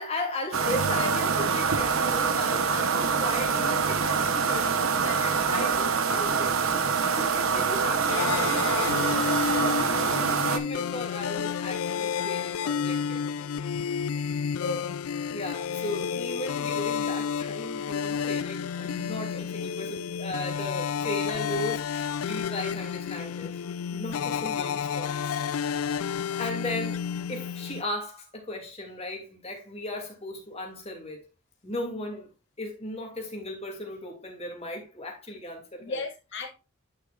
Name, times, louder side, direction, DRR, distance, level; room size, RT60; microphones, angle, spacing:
voice 1, 0.0-9.7 10.0-13.2 15.3-23.6 23.9-25.4 25.8-26.0 26.4-31.2 31.6-32.3 32.6-36.0, left 1 dB, 30° left, 2.7 m, -36 dB
sound 1, 0.5-10.6, right 5 dB, 75° right, 1.0 m, -25 dB
voice 2, 5.0-5.4 10.0-10.3 14.6-15.0 35.8-36.5, left 2 dB, 60° left, 2.1 m, -36 dB
sound 2, 8.1-27.8, left 7 dB, 85° left, 0.3 m, -31 dB
10.0 x 6.3 x 2.5 m
head